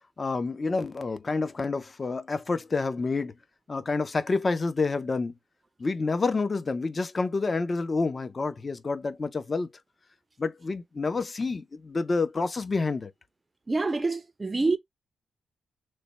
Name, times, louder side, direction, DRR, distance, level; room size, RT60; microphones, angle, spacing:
voice 1, 0.2-3.4 3.7-5.3 5.8-9.7 10.4-13.1, left 3 dB, 35° left, 0.5 m, -28 dB
voice 2, 13.7-14.8, right 3 dB, 25° right, 0.4 m, -26 dB
3.2 x 2.1 x 4.0 m
wide cardioid pair, 115°, 0 cm